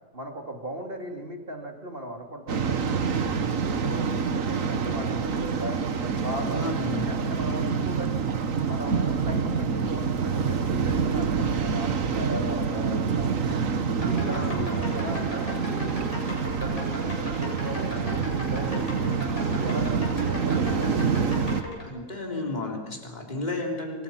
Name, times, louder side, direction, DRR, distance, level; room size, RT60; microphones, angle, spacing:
voice 1, 0.1-5.8 6.2-8.1 8.6-13.6 14.0-16.1 16.5-20.9, right 1 dB, 35° right, 3 dB, 3.2 m, -38 dB
Waves surf, 2.5-21.6, right 5 dB, 60° right, 1.7 m, -27 dB
voice 2, 6.5-7.1 14.3-14.7 21.8-24.0, left 2 dB, 25° left, 1 dB, 4.0 m, -33 dB
sound 1, 13.9-21.8, left 1 dB, 50° left, 8.4 m, -38 dB
28.0 x 25.5 x 5.9 m, 1.4 s
omnidirectional pair, 1.6 m